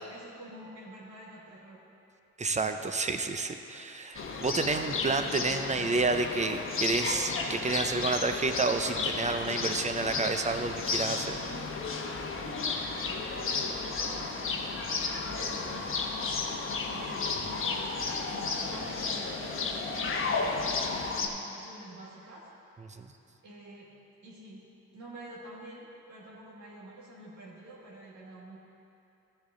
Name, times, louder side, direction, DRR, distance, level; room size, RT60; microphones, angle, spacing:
voice 1, 0.0-1.8 11.4-11.8 13.0-14.7 15.0-18.1 18.4-22.5 23.4-23.9 24.2-24.6 24.9-28.6, right 1 dB, 70° right, -5 dB, 1.8 m, -48 dB
voice 2, 2.4-11.4 22.9-23.1, right 3 dB, 25° right, 7 dB, 0.6 m, -30 dB
sound 1, 4.1-21.3, left 4 dB, 45° left, 1.0 m, -33 dB
13.5 x 7.1 x 3.8 m, 2.8 s
cardioid pair, 90°, 30 cm